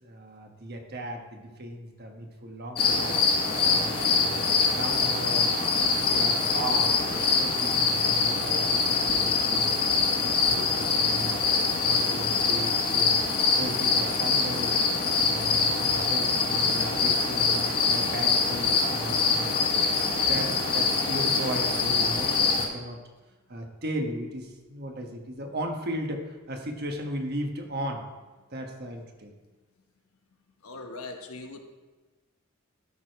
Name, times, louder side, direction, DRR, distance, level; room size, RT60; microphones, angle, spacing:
voice 1, 0.0-3.2 3.6-5.6 6.1-9.8 10.2-13.2 13.5-14.8 15.2-19.5 20.1-23.0 23.5-28.0 28.5-29.3, right 1 dB, 45° right, 3 dB, 1.2 m, -36 dB
sound 1, 2.8-22.6, left 4 dB, 45° left, 1.6 m, -24 dB
voice 2, 30.6-31.6, left 2 dB, 85° left, 4 dB, 1.1 m, -43 dB
12.5 x 4.9 x 4.6 m, 1.2 s
head